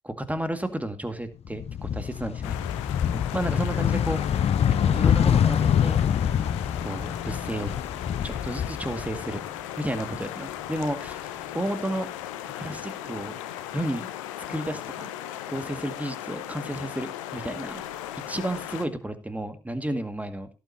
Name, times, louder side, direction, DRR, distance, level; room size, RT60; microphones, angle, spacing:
voice 1, 0.0-2.6 3.1-6.0 6.8-7.7 8.2-9.4 9.8-12.1 12.4-13.3 13.7-14.1 14.5-15.1 15.5-17.8 18.3-20.5, right 1 dB, 10° right, 9 dB, 2.1 m, -32 dB
sound 1, 1.5-9.6 9.9-11.1, left 8 dB, 40° left, 0.6 m, -25 dB
sound 2, 2.4-18.9, left 12 dB, 70° left, 1.1 m, -37 dB
17.0 x 8.7 x 2.8 m, 0.30 s
figure-of-eight pair, 45°, 17 cm